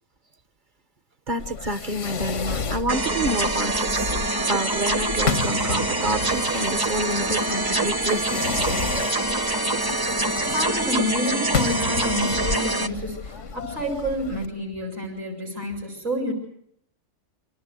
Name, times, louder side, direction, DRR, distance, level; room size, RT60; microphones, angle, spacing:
voice 1, 1.3-4.2 4.5-9.1, right 1 dB, 45° right, 11 dB, 1.2 m, -29 dB
Fireworks, 1.4-14.5, left 5 dB, 85° left, 1.6 m, -32 dB
sound 1, 2.9-12.9, right 2 dB, 20° right, 0.9 m, -25 dB
voice 2, 10.4-16.3, left 1 dB, 75° right, -1 dB, 5.9 m, -29 dB
26.5 x 17.5 x 9.0 m, 0.73 s
omnidirectional pair, 1.2 m